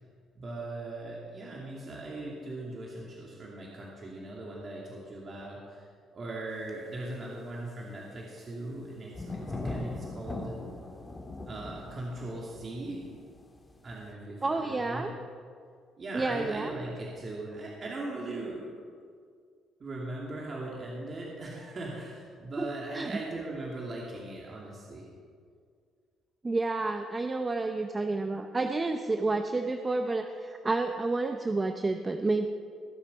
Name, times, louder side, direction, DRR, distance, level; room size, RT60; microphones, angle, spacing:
voice 1, 0.3-10.6 11.4-13.1 13.8-15.1 16.0-18.8 19.8-25.1, right 2 dB, 40° right, -3 dB, 2.6 m, -39 dB
sound 1, 6.7-6.8 8.4-8.5 8.7-8.9 9.1-14.0, left 2 dB, 20° left, 2.2 m, -40 dB
voice 2, 14.4-15.1 16.1-16.7 22.6-22.7 22.9-23.1 26.4-32.5, right 3 dB, 25° right, 6 dB, 0.7 m, -30 dB
20.5 x 7.3 x 5.5 m, 2.1 s
cardioid pair, 90°, 0 cm